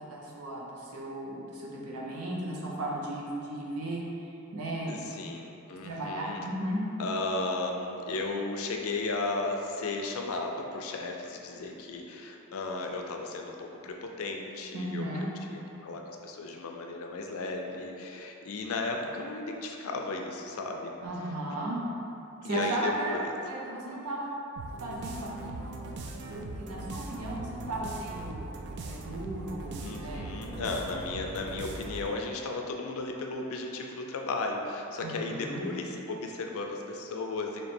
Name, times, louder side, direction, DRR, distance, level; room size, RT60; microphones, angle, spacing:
voice 1, 0.0-4.0 4.5-5.1 5.8-6.8 14.7-15.3 21.0-21.8 22.4-24.3 24.8-25.8 26.3-28.4 28.8-30.5 35.0-35.6, right 1 dB, 85° right, -4 dB, 0.7 m, -35 dB
voice 2, 4.9-6.5 7.0-20.9 22.4-23.3 29.8-37.6, left 3 dB, 65° left, 2 dB, 0.4 m, -35 dB
sound 1, 24.6-32.2, right 3 dB, 50° right, 0.3 m, -40 dB
3.2 x 3.0 x 4.3 m, 2.9 s
head